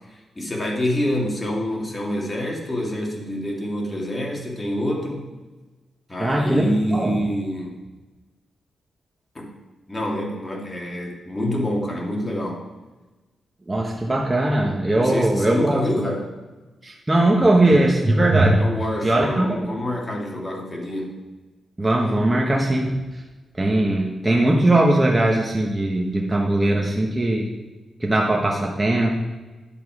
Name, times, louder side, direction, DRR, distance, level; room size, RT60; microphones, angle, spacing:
voice 1, 0.4-5.3 6.1-7.7 9.3-9.5 9.9-12.6 15.0-16.2 18.6-21.1, left 1 dB, 25° left, -2 dB, 2.4 m, -26 dB
voice 2, 6.2-7.2 13.7-15.8 16.8-18.6 19.0-19.7 21.8-22.9 23.6-27.5 28.0-29.1, right 1 dB, 15° right, -1 dB, 1.2 m, -19 dB
10.5 x 7.1 x 4.8 m, 1.2 s
cardioid pair, 110°, 0 cm